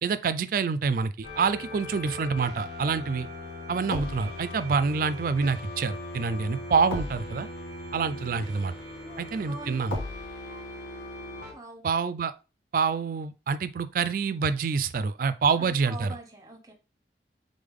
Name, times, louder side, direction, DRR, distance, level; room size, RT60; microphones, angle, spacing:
voice 1, 0.0-3.3 3.7-7.5 7.9-8.7 9.2-10.0 11.8-12.3 12.7-16.1, right 5 dB, 50° right, 0.3 m, -27 dB
sound 1, 1.2-11.5, left 1 dB, 90° left, 1.6 m, -38 dB
voice 2, 8.9-9.9 11.5-11.8 15.5-16.7, right 2 dB, 20° right, 0.8 m, -44 dB
3.7 x 3.4 x 3.6 m
head